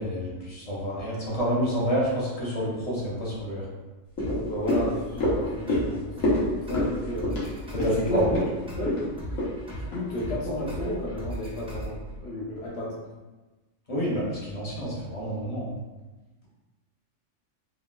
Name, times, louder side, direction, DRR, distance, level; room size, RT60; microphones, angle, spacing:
voice 1, 0.0-3.6 7.8-8.2 13.9-15.7, equal, 35° left, -6 dB, 0.8 m, -28 dB
sound 1, 4.1-10.6 11.0-11.1, left 1 dB, 85° left, 1.3 m, -29 dB
sound 2, 4.2-12.2, right 1 dB, 5° right, 0.4 m, -37 dB
voice 2, 4.3-7.4 7.8-8.5 8.8-9.1 9.7-13.0, left 1 dB, 60° left, -5 dB, 1.0 m, -32 dB
3.8 x 2.3 x 2.2 m, 1.2 s
omnidirectional pair, 1.4 m